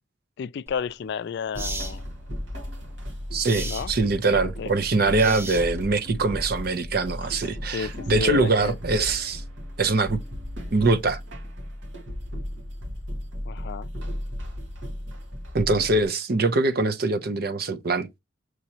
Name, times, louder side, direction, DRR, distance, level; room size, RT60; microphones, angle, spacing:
voice 1, 0.4-2.1 3.6-3.9 4.6-4.7 5.2-5.4 7.7-8.8 13.5-13.9, left 6 dB, 60° left, 0.3 m, -32 dB
sound 1, 0.7-0.8 1.6-2.0 3.4-3.9 5.2-5.9, right 2 dB, 15° right, 0.8 m, -35 dB
sound 2, 1.5-16.1, equal, 75° right, 1.7 m, -35 dB
voice 2, 3.3-9.4 9.8-10.2 10.7-11.2 15.5-18.2, right 3 dB, 55° right, 0.7 m, -23 dB
6.2 x 2.9 x 2.8 m
head